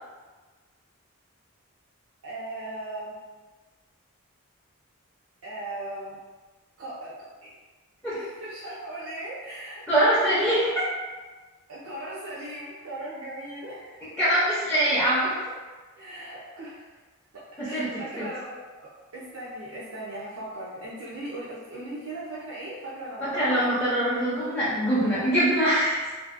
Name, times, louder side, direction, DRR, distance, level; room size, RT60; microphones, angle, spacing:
voice 1, 2.2-3.2 5.4-6.2 6.8-7.1 7.4-7.5 8.1-9.8 10.2-10.6 11.7-14.1 16.0-16.9 17.6-18.6 19.1-23.7, right 1 dB, 75° right, -8 dB, 0.6 m, -38 dB
voice 2, 9.9-10.7 14.0-15.3 17.6-17.9 18.2-18.3 23.2-26.0, right 1 dB, 5° left, -12 dB, 0.5 m, -23 dB
2.6 x 2.6 x 2.5 m, 1.3 s
head